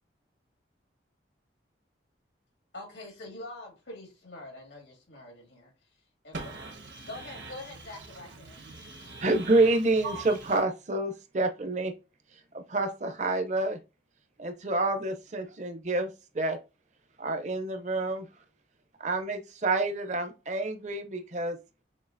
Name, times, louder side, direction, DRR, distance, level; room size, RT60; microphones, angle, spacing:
voice 1, 2.7-5.7 6.2-6.3 7.1-8.7, left 2 dB, 80° left, 2.2 m, -44 dB
voice 2, 6.3-10.6, right 3 dB, 80° right, 1.4 m, -42 dB
voice 3, 9.2-11.9 12.7-13.8 14.4-16.1 16.4-16.6 17.2-18.2 19.0-21.6, right 2 dB, 40° right, 0.6 m, -28 dB
6.3 x 2.8 x 2.6 m
head